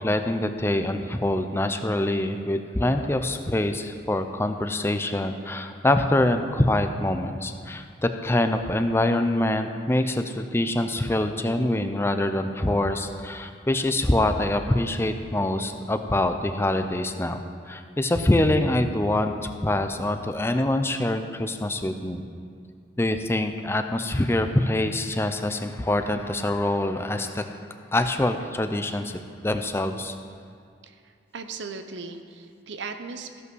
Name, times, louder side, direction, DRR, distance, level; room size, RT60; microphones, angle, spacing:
voice 1, 0.0-22.2 23.0-27.6 27.9-29.1 29.4-30.1, left 1 dB, 15° left, 7 dB, 0.5 m, -25 dB
voice 2, 30.8-33.4, right 4 dB, 85° right, 8 dB, 0.7 m, -38 dB
14.5 x 5.5 x 6.2 m, 2.3 s
head